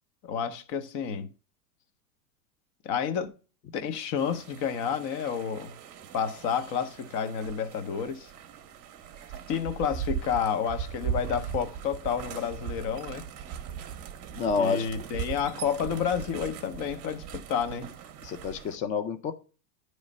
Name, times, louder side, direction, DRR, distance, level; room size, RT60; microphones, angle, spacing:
voice 1, 0.2-1.3 2.8-3.4 3.7-5.7 6.1-8.3 9.5-13.2 14.6-18.0, left 7 dB, 40° left, 0.9 m, -30 dB
sound 1, 4.2-18.8, right 8 dB, 30° right, 0.8 m, -39 dB
voice 2, 14.3-14.9 18.2-19.3, left 5 dB, 15° left, 0.4 m, -28 dB
9.7 x 3.2 x 5.2 m
hypercardioid pair, 110°, 48 cm